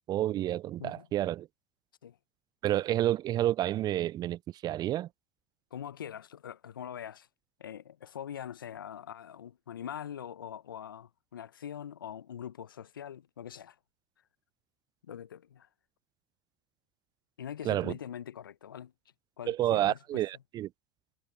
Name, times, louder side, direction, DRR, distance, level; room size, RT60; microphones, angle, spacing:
voice 1, 0.1-1.5 2.6-5.1 17.7-17.9 19.5-20.7, right 13 dB, 40° right, 0.4 m, -29 dB
voice 2, 5.7-7.3 7.6-13.8 15.0-15.7 17.4-18.9 19.4-20.2, left 9 dB, 85° left, 0.9 m, -43 dB
hypercardioid pair, 80°, 11 cm